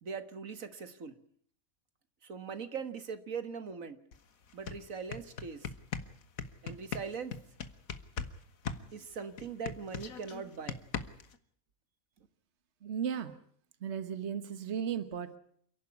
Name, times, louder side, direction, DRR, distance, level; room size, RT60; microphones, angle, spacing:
voice 1, 0.0-1.1 2.2-4.0 4.5-5.7 6.6-7.3 8.9-10.8, right 6 dB, 70° right, 10 dB, 1.9 m, -41 dB
sound 1, 4.1-4.2 4.5-8.4 8.7-11.4, left 6 dB, 80° left, 1.7 m, -39 dB
voice 2, 12.8-13.3 13.8-15.4, right 8 dB, 55° right, 11 dB, 1.5 m, -35 dB
28.5 x 11.5 x 9.8 m, 0.63 s
omnidirectional pair, 1.4 m